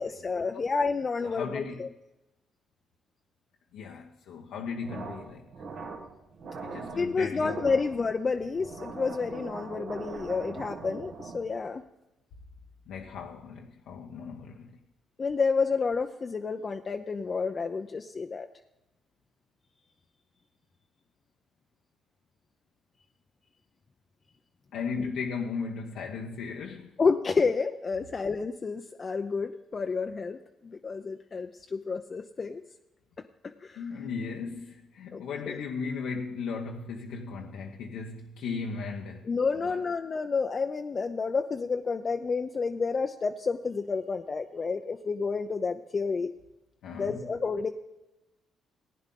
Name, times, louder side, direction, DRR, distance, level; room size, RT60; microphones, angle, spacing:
voice 1, 0.0-1.9 6.9-11.8 15.2-18.5 25.0-25.1 27.0-32.6 33.4-33.8 35.1-35.6 39.2-46.3 46.9-47.7, left 4 dB, 40° left, 0.6 m, -30 dB
voice 2, 1.2-1.9 3.7-5.4 6.6-7.6 12.9-14.8 24.7-26.9 33.8-39.3 39.6-39.8 46.8-47.3, left 5 dB, 80° left, 0.9 m, -36 dB
sound 1, 4.8-11.7, right 4 dB, 70° right, 1.9 m, -41 dB
15.5 x 9.6 x 3.8 m
supercardioid pair, 65°, 0 cm